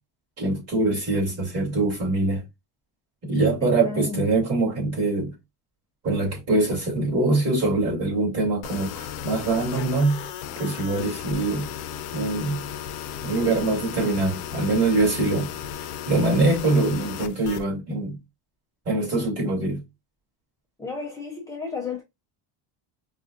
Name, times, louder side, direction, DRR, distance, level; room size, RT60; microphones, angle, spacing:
voice 1, 0.4-2.4 3.2-5.3 6.0-10.2 10.6-11.6 12.1-12.6 13.2-15.5 15.8-18.2 18.9-19.8, right 2 dB, 30° right, 2.6 m, -23 dB
voice 2, 3.6-4.2 20.8-22.0, left 4 dB, 5° left, 0.4 m, -33 dB
sound 1, 8.6-17.6, left 9 dB, 75° left, 0.8 m, -35 dB
5.2 x 2.5 x 2.5 m
cardioid pair, 165°, 49 cm